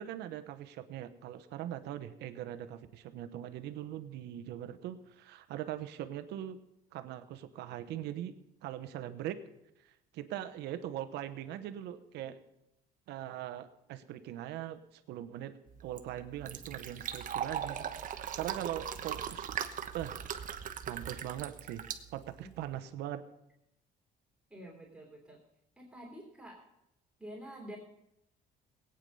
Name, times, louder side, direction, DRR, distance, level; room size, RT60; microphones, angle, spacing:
voice 1, 0.0-6.6 6.9-8.3 8.6-9.4 9.8-12.4 13.1-15.5 15.8-19.5 19.9-20.2 20.9-21.8 22.1-23.2, right 12 dB, 85° right, 11 dB, 1.0 m, -41 dB
Fill (with liquid), 15.7-22.8, right 9 dB, 50° right, 1.0 m, -40 dB
voice 2, 24.5-25.4 25.8-26.6 27.2-27.8, right 1 dB, 5° right, -2 dB, 3.2 m, -48 dB
18.0 x 9.2 x 5.5 m, 0.84 s
cardioid pair, 110°, 17 cm